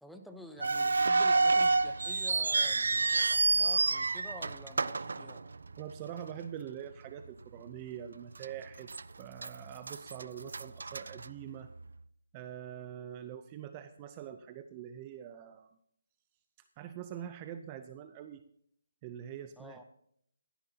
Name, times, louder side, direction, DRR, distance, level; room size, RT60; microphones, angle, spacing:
voice 1, 0.0-5.4 19.6-19.8, equal, ahead, 5 dB, 0.9 m, -50 dB
sound 1, 0.6-5.9 6.2-6.3 7.0-7.3 7.7-7.8 8.4-9.0 9.4-11.8, right 3 dB, 75° right, 0.5 m, -29 dB
voice 2, 5.8-8.9 9.2-11.7 12.3-15.7 16.8-18.4 19.0-19.8, right 10 dB, 20° right, 9 dB, 0.6 m, -44 dB
16.0 x 14.0 x 2.9 m, 0.68 s
hypercardioid pair, 160°, 0 cm